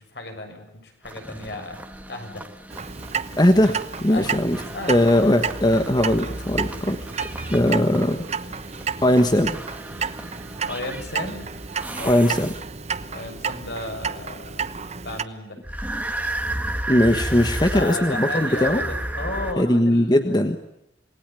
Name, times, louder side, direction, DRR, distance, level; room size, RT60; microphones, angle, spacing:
voice 1, 0.0-1.8 2.1-2.4 4.1-5.5 10.6-11.5 11.8-12.2 13.1-14.8 15.0-15.6 17.7-20.5, left 2 dB, 65° left, 5 dB, 6.6 m, -34 dB
sound 1, 1.0-12.9 15.6-19.5, right 1 dB, 10° right, 2.1 m, -33 dB
Clock, 2.7-15.2, right 5 dB, 40° right, 1.0 m, -31 dB
voice 2, 3.4-3.7 4.0-4.6 4.9-7.0 7.5-8.2 9.0-9.6 12.0-12.5 16.9-18.8 19.6-20.5, left 1 dB, 25° left, 8 dB, 1.3 m, -19 dB
27.5 x 20.5 x 9.2 m, 0.82 s
head